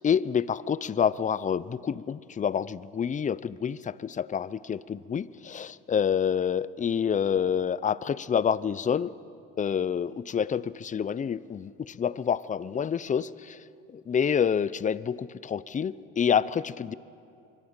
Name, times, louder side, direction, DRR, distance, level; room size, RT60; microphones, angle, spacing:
voice 1, 0.0-9.1 9.6-13.6 14.1-16.9, left 7 dB, 25° left, 18 dB, 0.7 m, -28 dB
25.0 x 24.5 x 9.0 m, 2.6 s
supercardioid pair, 95°, 29 cm